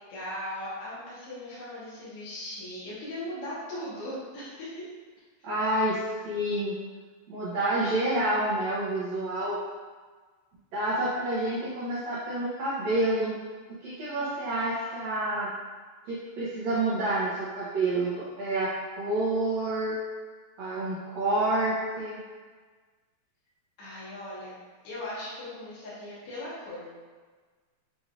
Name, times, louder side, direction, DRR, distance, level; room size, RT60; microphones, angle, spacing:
voice 1, 0.1-4.8 23.8-24.6 24.8-26.9, left 1 dB, 55° left, -9 dB, 1.7 m, -38 dB
voice 2, 5.4-6.7 7.3-9.6 10.7-13.4 13.8-15.5 16.1-18.7 19.0-20.0 20.6-22.2, right 1 dB, 85° right, -10 dB, 1.5 m, -28 dB
6.8 x 3.1 x 2.5 m, 1.4 s
omnidirectional pair, 4.4 m